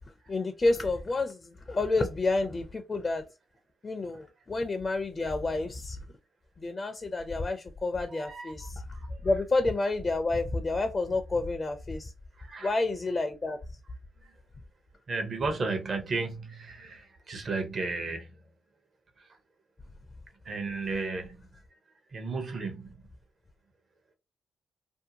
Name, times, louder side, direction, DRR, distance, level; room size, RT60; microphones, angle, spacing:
voice 1, 0.3-3.2 3.8-6.0 6.6-8.8 9.2-12.1 12.6-13.6, left 2 dB, 40° left, 0.4 m, -29 dB
voice 2, 8.1-9.2 12.4-12.8 14.2-14.4 15.1-18.4 19.2-19.3 20.4-21.4 22.1-22.9, right 3 dB, 55° right, 0.7 m, -34 dB
2.6 x 2.1 x 2.7 m
hypercardioid pair, 45°, 0 cm